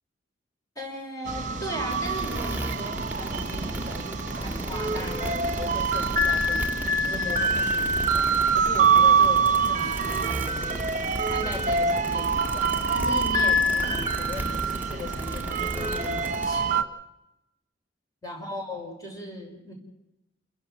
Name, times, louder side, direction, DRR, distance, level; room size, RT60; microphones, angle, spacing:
voice 1, 0.8-6.7 7.0-10.8 11.2-16.7 18.2-19.7, left 1 dB, 20° left, 0 dB, 5.9 m, -38 dB
sound 1, 1.3-16.8, right 3 dB, 45° right, 1.4 m, -25 dB
sound 2, 1.9-16.5, right 1 dB, 10° right, 2.0 m, -35 dB
28.5 x 15.5 x 6.6 m, 0.90 s
head